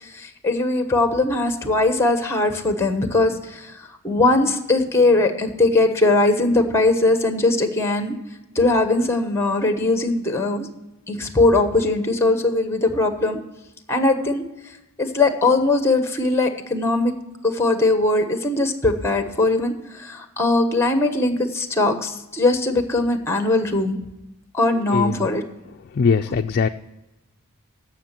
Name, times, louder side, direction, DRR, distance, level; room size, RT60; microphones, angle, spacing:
voice 1, 0.0-8.2 8.5-10.7 11.1-13.4 13.9-14.4 15.0-17.1 17.4-23.9 24.5-25.4 26.3-26.4, left 2 dB, 10° left, 7 dB, 1.1 m, -20 dB
voice 2, 25.9-26.7, left 5 dB, 45° left, 5 dB, 0.4 m, -20 dB
15.5 x 5.9 x 5.8 m, 0.95 s
head